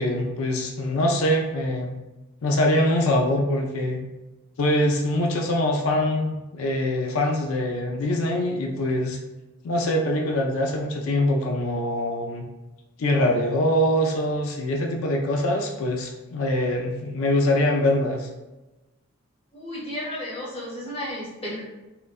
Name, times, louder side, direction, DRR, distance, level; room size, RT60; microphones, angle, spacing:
voice 1, 0.0-2.0 2.4-4.0 4.6-9.2 9.6-12.5 13.0-18.3, left 1 dB, 80° left, 2 dB, 0.4 m, -23 dB
voice 2, 19.5-21.6, left 1 dB, 25° left, -6 dB, 0.9 m, -33 dB
3.7 x 2.1 x 2.4 m, 1.1 s
head